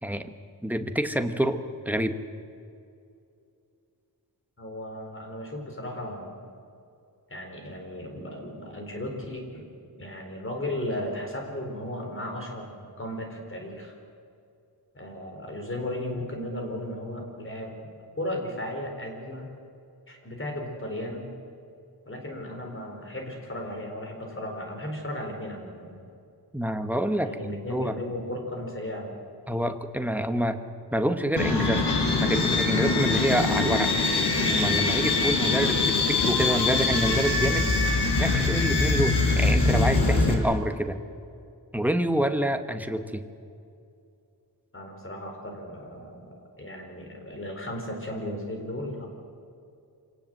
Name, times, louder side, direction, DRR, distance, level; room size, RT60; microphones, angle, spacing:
voice 1, 0.0-0.3 0.6-2.2 26.5-27.9 29.5-30.6 30.9-31.8 32.2-33.9 34.5-37.7 38.2-41.0 41.7-43.2, right 1 dB, 5° right, 7 dB, 1.1 m, -27 dB
voice 2, 4.6-6.4 7.3-9.7 10.0-13.9 14.9-17.9 18.2-19.5 20.1-21.3 22.1-25.9 27.2-29.1 44.7-46.2 46.6-49.1, left 1 dB, 30° left, 2 dB, 4.4 m, -35 dB
sound 1, 31.4-40.3, left 3 dB, 85° left, 4.0 m, -23 dB
26.0 x 18.5 x 7.8 m, 2.5 s
wide cardioid pair, 155°, 39 cm